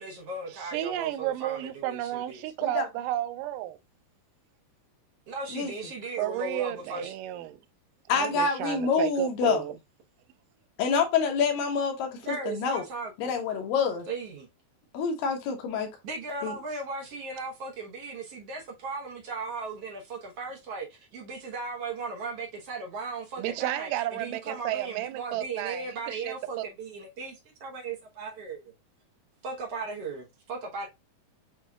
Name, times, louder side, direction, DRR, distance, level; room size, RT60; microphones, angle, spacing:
voice 1, 0.0-2.4 5.3-7.1 12.2-13.4 14.1-14.5 16.0-28.7 29.4-30.9, right 3 dB, 60° right, 1.7 m, -37 dB
voice 2, 0.5-3.8 6.2-7.6 8.1-9.8 23.4-26.6, right 14 dB, 80° right, 2.0 m, -32 dB
voice 3, 8.1-9.6 10.8-12.2 12.5-12.8 13.2-14.1 14.9-15.9 16.4-16.5, left 5 dB, 80° left, 2.8 m, -26 dB
8.2 x 2.8 x 2.3 m
omnidirectional pair, 4.0 m